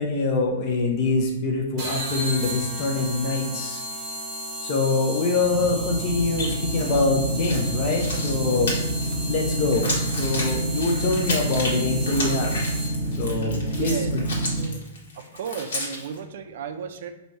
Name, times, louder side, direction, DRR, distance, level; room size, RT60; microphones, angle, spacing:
voice 1, 0.0-3.8 4.6-8.8 9.2-9.9 10.2-12.5 13.2-14.2, left 3 dB, 25° left, 0 dB, 0.5 m, -24 dB
sound 1, 1.8-13.2, equal, 20° right, 1.1 m, -34 dB
sound 2, 5.3-14.6, right 1 dB, ahead, 1.0 m, -28 dB
sound 3, 6.3-7.0 7.3-16.2, left 2 dB, 70° left, 1.4 m, -33 dB
voice 2, 13.7-14.1 14.6-14.8 15.2-17.1, right 7 dB, 45° right, 7 dB, 0.4 m, -34 dB
4.2 x 2.7 x 4.5 m, 0.92 s
hypercardioid pair, 180°, 0 cm